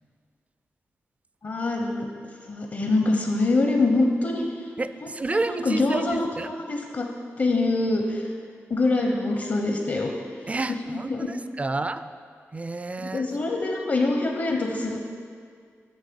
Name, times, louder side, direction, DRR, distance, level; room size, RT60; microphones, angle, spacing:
voice 1, 1.4-2.1 2.5-4.5 5.0-7.1 7.4-8.3 8.7-10.1 10.9-11.3 13.0-15.0, left 2 dB, 55° left, 2 dB, 0.8 m, -24 dB
voice 2, 4.8-6.5 10.5-12.0 12.5-13.3 13.6-13.7, right 3 dB, 25° right, 12 dB, 0.4 m, -30 dB
8.1 x 6.5 x 5.2 m, 2.1 s
cardioid pair, 70°, 5 cm